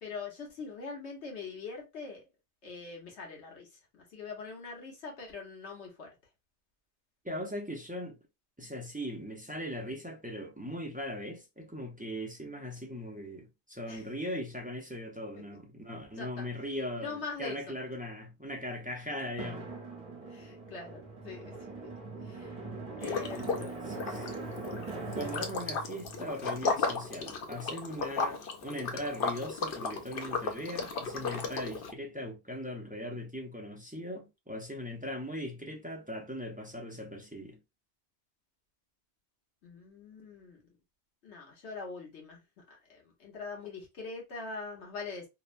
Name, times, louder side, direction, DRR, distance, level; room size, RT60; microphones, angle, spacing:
voice 1, 0.0-2.2 2.6-6.1 13.9-14.1 16.2-16.5 16.9-17.6 20.3-21.9 22.2-22.6 23.0-23.7 24.1-24.3 39.6-40.6 41.2-45.3, left 4 dB, 80° left, 1.3 m, -43 dB
voice 2, 7.2-8.2 8.6-19.7 23.0-24.3 25.2-37.6, equal, 15° right, 0.3 m, -39 dB
Drum, 19.4-27.7, right 3 dB, 35° right, 1.0 m, -42 dB
Liquid, 23.0-23.7 23.9-31.9, left 4 dB, 65° left, 0.7 m, -35 dB
2.8 x 2.1 x 2.4 m
omnidirectional pair, 1.1 m